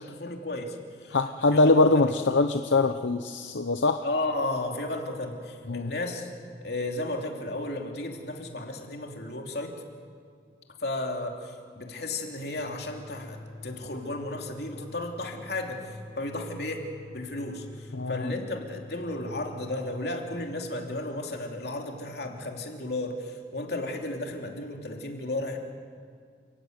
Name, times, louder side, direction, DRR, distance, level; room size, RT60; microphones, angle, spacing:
voice 1, 0.0-1.2 1.5-2.1 4.0-6.3 6.6-9.7 10.8-16.9 17.1-25.6, left 2 dB, 60° left, 2 dB, 3.0 m, -34 dB
voice 2, 1.1-4.0 5.7-5.9 17.9-18.3, left 3 dB, 85° left, 7 dB, 0.8 m, -23 dB
sound 1, 12.4-21.9, left 2 dB, 55° right, 7.5 m, -47 dB
29.5 x 15.5 x 9.4 m, 2.1 s
head